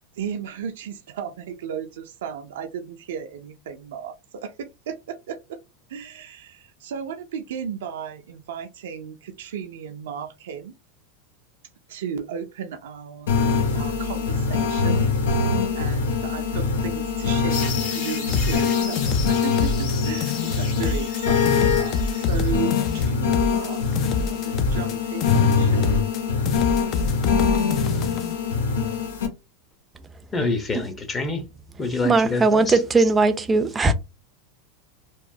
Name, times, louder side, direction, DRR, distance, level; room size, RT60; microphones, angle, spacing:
voice 1, 0.1-5.6 5.9-10.7 11.9-13.4 13.7-15.1 15.7-19.0 19.3-26.0, right 8 dB, 80° right, 0.4 m, -35 dB
sound 1, 13.3-29.3, left 5 dB, 90° left, 0.6 m, -23 dB
sound 2, 17.5-23.1, left 5 dB, 65° left, 1.2 m, -35 dB
sound 3, 18.3-20.0 20.2-21.2 21.5-25.0 25.2-26.2 26.5-28.3, left 5 dB, 45° left, 0.4 m, -27 dB
voice 2, 30.3-31.4 31.8-32.6, left 3 dB, 25° left, 0.8 m, -26 dB
voice 3, 32.0-33.9, right 3 dB, 15° right, 0.4 m, -19 dB
2.9 x 2.0 x 2.6 m
hypercardioid pair, 110°, 0 cm